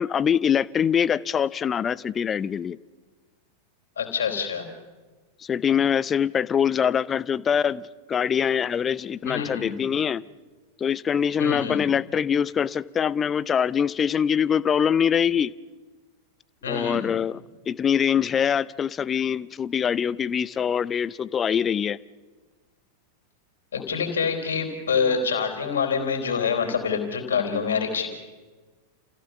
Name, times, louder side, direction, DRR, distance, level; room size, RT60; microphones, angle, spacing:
voice 1, 0.0-2.8 5.4-10.2 10.8-15.5 16.7-22.0, left 8 dB, 20° left, 19 dB, 0.6 m, -24 dB
voice 2, 4.0-4.7 9.2-9.8 11.4-11.8 16.6-17.1 23.7-28.1, left 6 dB, 65° left, 4 dB, 4.2 m, -26 dB
29.5 x 16.0 x 7.2 m, 1.3 s
figure-of-eight pair, 90°, 0 cm